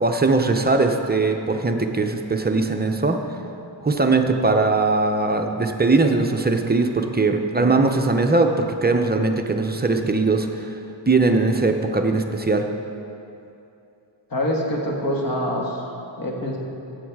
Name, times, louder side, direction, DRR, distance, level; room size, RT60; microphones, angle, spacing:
voice 1, 0.0-3.2 3.8-10.8 11.1-12.7, right 3 dB, 20° right, 4 dB, 0.5 m, -20 dB
voice 2, 14.3-15.8 16.2-16.6, equal, 45° left, -1 dB, 1.5 m, -25 dB
13.5 x 7.9 x 4.7 m, 2.7 s
wide cardioid pair, 160°, 45 cm